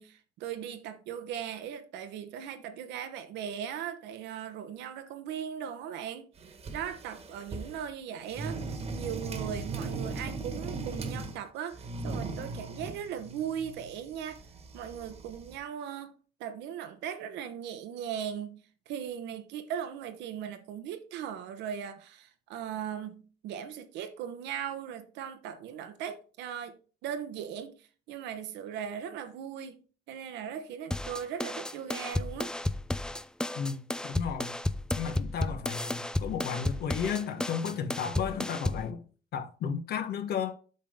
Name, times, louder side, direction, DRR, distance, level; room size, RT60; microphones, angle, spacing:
voice 1, 0.0-6.3 6.7-14.4 14.7-16.1 16.4-32.5, right 9 dB, 85° right, 1.2 m, -38 dB
sound 1, 6.4-7.9 8.3-11.4 11.7-15.6, right 3 dB, 35° right, 1.5 m, -38 dB
sound 2, 30.9-38.9, left 1 dB, 5° left, 0.4 m, -33 dB
voice 2, 33.5-34.6 35.0-39.0 39.3-40.5, left 7 dB, 65° left, 1.3 m, -33 dB
8.4 x 5.6 x 3.7 m
cardioid pair, 120°, 18 cm